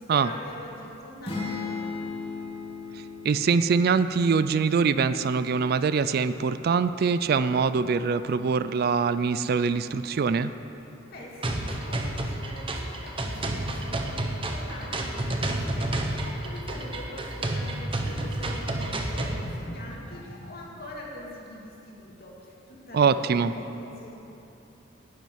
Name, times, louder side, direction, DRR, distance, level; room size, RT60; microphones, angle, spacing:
voice 1, 0.0-2.0 11.1-24.2, left 1 dB, 50° left, -3 dB, 2.4 m, -43 dB
sound 1, 1.2-5.0, left 4 dB, 30° left, 2.0 m, -36 dB
voice 2, 3.2-10.5 22.9-23.5, right 5 dB, 50° right, 13 dB, 0.3 m, -23 dB
sound 2, 11.4-19.4, right 1 dB, 25° right, 0.9 m, -30 dB
sound 3, 17.9-21.0, equal, 70° left, 1.6 m, -44 dB
11.0 x 7.4 x 9.7 m, 3.0 s
head